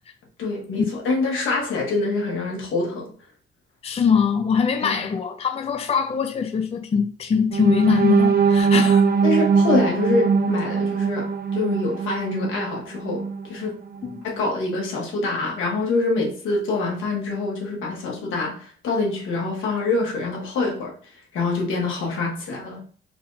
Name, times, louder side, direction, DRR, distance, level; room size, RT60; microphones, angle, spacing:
voice 1, 0.4-3.1 4.8-5.0 9.2-13.8 14.2-20.9 21.3-22.8, left 3 dB, 80° left, 1.9 m, -25 dB
voice 2, 3.8-9.0 14.0-14.2, left 6 dB, 30° left, 0.5 m, -22 dB
sound 1, 7.5-13.5 13.9-14.1 14.5-14.7, right 5 dB, 50° right, 0.7 m, -21 dB
4.4 x 2.7 x 4.0 m
cardioid pair, 90°, 20 cm